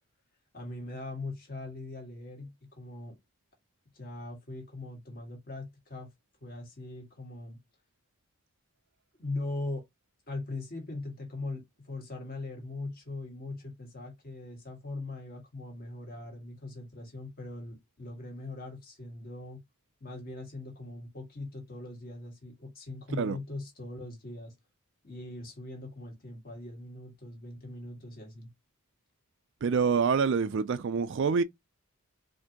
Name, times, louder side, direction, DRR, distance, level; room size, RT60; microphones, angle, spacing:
voice 1, 0.5-3.2 3.9-6.1 6.4-7.6 9.2-9.8 10.3-19.6 20.0-24.5 25.0-28.5, left 2 dB, 40° left, 1.6 m, -40 dB
voice 2, 29.6-31.4, right 5 dB, 55° right, 0.4 m, -26 dB
4.3 x 2.7 x 2.8 m
head